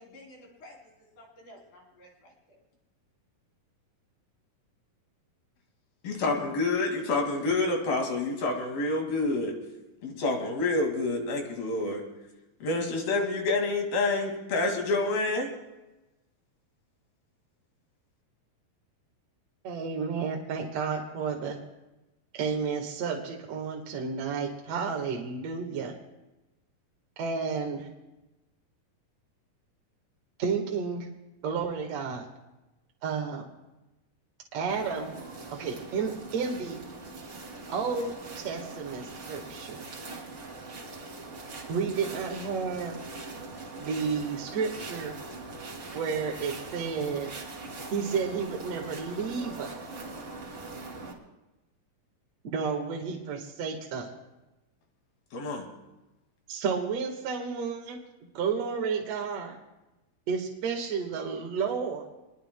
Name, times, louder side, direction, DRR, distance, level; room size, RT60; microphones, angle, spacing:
voice 1, 0.0-2.6, left 1 dB, 60° left, -1 dB, 4.6 m, -52 dB
voice 2, 6.0-9.6 10.0-12.0 12.6-15.5 55.3-55.7, left 2 dB, 90° left, 2 dB, 4.0 m, -28 dB
voice 3, 19.6-21.6 22.3-26.0 27.2-27.9 30.4-31.1 31.4-32.3 33.0-33.5 34.5-35.1 35.5-36.8 37.7-39.9 41.7-43.0 43.8-45.2 45.9-47.3 47.9-49.8 52.5-54.1 56.5-58.0 58.3-59.6 60.3-62.1, right 5 dB, 55° right, 0 dB, 2.3 m, -31 dB
sound 1, 34.7-51.1, right 3 dB, 35° right, 2.6 m, -42 dB
26.5 x 21.5 x 2.2 m, 1.0 s
omnidirectional pair, 4.1 m